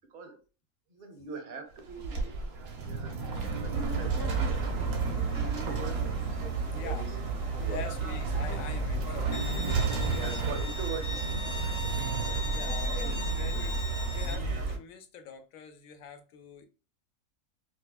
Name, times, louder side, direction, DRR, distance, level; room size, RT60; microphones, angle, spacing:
voice 1, 0.9-3.1 3.4-4.2 5.4-6.0 6.7-7.1 7.5-7.8 9.9-12.5 12.8-13.2, right 4 dB, 45° right, 7 dB, 0.7 m, -43 dB
sound 1, 1.7-13.6, right 4 dB, 85° right, 1.4 m, -35 dB
sound 2, 3.7-14.8, right 4 dB, 70° right, 1.3 m, -33 dB
voice 2, 6.7-7.1 7.5-10.2 12.4-16.7, left 6 dB, 75° left, 7 dB, 1.1 m, -44 dB
Bowed string instrument, 9.3-14.3, left 2 dB, 30° left, 0.5 m, -39 dB
4.9 x 2.2 x 2.2 m, 0.33 s
omnidirectional pair, 1.5 m